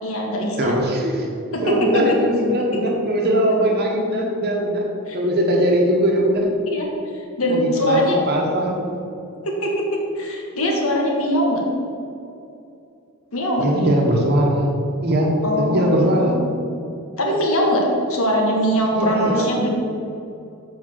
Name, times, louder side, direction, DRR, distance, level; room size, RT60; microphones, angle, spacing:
voice 1, 0.0-0.7 1.5-1.9 5.1-5.2 6.7-6.8 7.1-8.2 9.4-11.6 13.3-13.9 15.4-16.5 17.2-19.7, equal, 65° left, 0 dB, 1.6 m, -22 dB
voice 2, 0.6-1.3 1.6-4.9 5.1-6.5 7.4-9.0 13.6-14.7 15.0-16.4 18.9-19.6, equal, 45° right, 0 dB, 1.2 m, -20 dB
7.6 x 5.1 x 6.4 m, 2.6 s
head